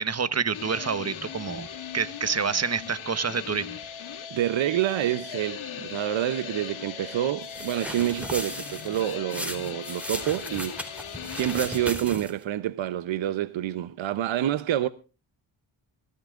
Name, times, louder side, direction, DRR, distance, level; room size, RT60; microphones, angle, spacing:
voice 1, 0.0-1.7 1.9-3.8, right 6 dB, 30° right, 1.2 m, -28 dB
sound 1, 0.5-11.9, left 8 dB, 75° left, 2.8 m, -39 dB
voice 2, 4.3-11.0 11.3-14.9, right 12 dB, 70° right, 0.8 m, -28 dB
sound 2, 7.4-12.4, equal, 5° right, 3.6 m, -36 dB
24.5 x 14.0 x 2.5 m
cardioid pair, 65°, 48 cm